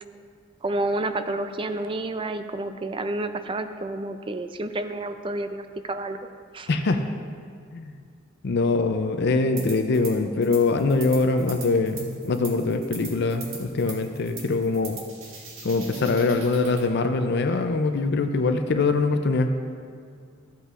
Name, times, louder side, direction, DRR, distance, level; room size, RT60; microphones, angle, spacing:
voice 1, 0.6-6.2 6.5-6.7, right 2 dB, 25° right, 9 dB, 0.4 m, -30 dB
voice 2, 6.7-7.0 7.7-8.0 8.4-15.0 15.6-19.5, left 3 dB, 55° left, 6 dB, 0.5 m, -23 dB
sound 1, 9.6-10.1 10.4-16.9, right 4 dB, 80° right, 1.6 m, -41 dB
14.5 x 8.1 x 2.5 m, 2.2 s
head